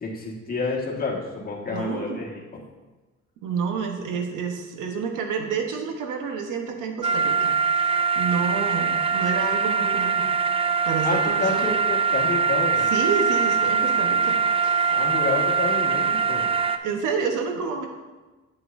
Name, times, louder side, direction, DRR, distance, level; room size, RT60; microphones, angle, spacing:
voice 1, 0.0-2.6 11.0-12.9 14.9-16.5, left 4 dB, 30° left, -3 dB, 1.8 m, -29 dB
voice 2, 1.7-2.2 3.4-10.3 10.8-11.7 12.9-14.4 14.6-15.0 16.8-17.9, right 5 dB, 90° right, 3 dB, 1.1 m, -29 dB
sound 1, 7.0-16.8, right 5 dB, 20° right, 0.4 m, -23 dB
8.3 x 8.0 x 2.7 m, 1.2 s
cardioid pair, 90°, 30 cm